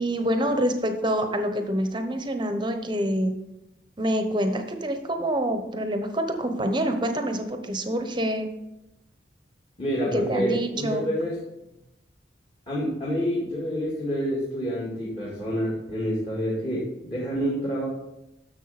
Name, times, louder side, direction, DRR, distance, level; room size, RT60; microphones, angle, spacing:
voice 1, 0.0-3.3 4.0-8.5 10.1-11.1, equal, 25° right, 6 dB, 1.0 m, -26 dB
voice 2, 9.8-11.4 12.7-17.9, equal, 30° left, -7 dB, 2.1 m, -28 dB
11.0 x 7.2 x 4.2 m, 0.89 s
head